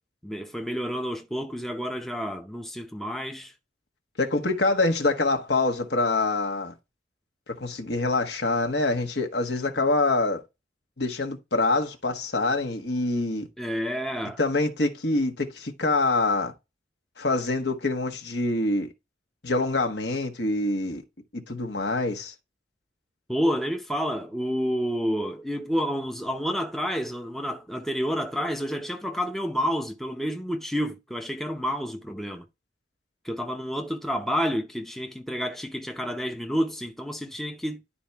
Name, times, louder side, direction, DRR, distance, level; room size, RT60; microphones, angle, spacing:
voice 1, 0.2-3.5 13.6-14.4 23.3-32.4 33.2-37.8, equal, ahead, 0.6 m, -29 dB
voice 2, 4.2-6.7 7.5-10.4 11.0-13.5 14.4-16.5 17.2-18.9 19.4-21.0 21.5-22.3, left 2 dB, 60° left, 1.3 m, -25 dB
11.0 x 4.3 x 3.5 m
head